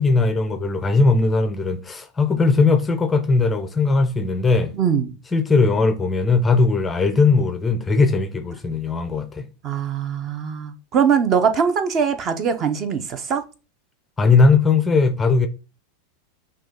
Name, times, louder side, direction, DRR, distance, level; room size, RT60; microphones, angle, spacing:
voice 1, 0.0-4.7 5.3-9.5 14.2-15.5, left 3 dB, 10° left, 0.5 m, -18 dB
voice 2, 4.7-5.2 9.6-13.4, right 7 dB, 30° right, 0.6 m, -21 dB
6.2 x 2.3 x 3.7 m
supercardioid pair, 145°, 0 cm